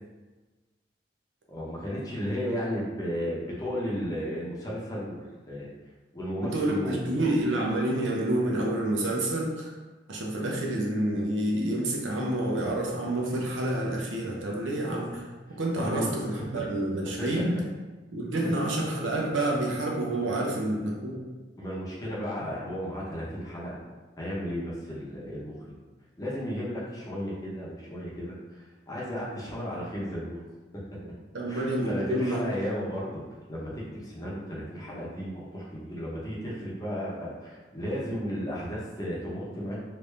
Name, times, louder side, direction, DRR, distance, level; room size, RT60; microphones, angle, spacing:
voice 1, 1.5-5.7 6.1-7.3 15.5-16.3 17.2-17.4 21.6-23.8 24.2-25.6 26.2-30.4 31.5-33.2 33.5-39.8, equal, 20° left, -6 dB, 0.7 m, -34 dB
voice 2, 6.4-9.7 10.1-15.3 15.6-17.6 18.1-21.2 31.3-32.4, right 1 dB, 85° right, -1 dB, 0.7 m, -28 dB
3.3 x 2.6 x 3.2 m, 1.3 s
head